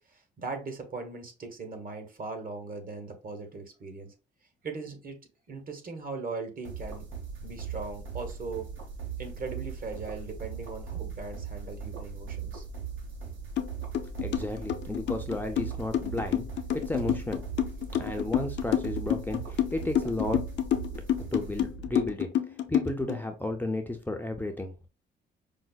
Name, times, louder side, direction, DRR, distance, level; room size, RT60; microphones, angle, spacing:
voice 1, 0.1-4.1 4.6-5.2 5.5-7.1 7.4-8.7 9.2-12.6, right 4 dB, 45° right, 5 dB, 1.0 m, -39 dB
sound 1, 6.6-22.1, right 6 dB, 70° right, 1.1 m, -39 dB
sound 2, 13.6-13.7 13.9-23.2, left 11 dB, 65° left, 0.5 m, -28 dB
voice 2, 14.2-16.4 16.7-17.4 18.0-20.4 21.3-22.3 22.7-24.9, left 2 dB, 10° left, 4 dB, 0.4 m, -33 dB
5.0 x 2.0 x 2.2 m, 0.31 s
cardioid pair, 90°, 20 cm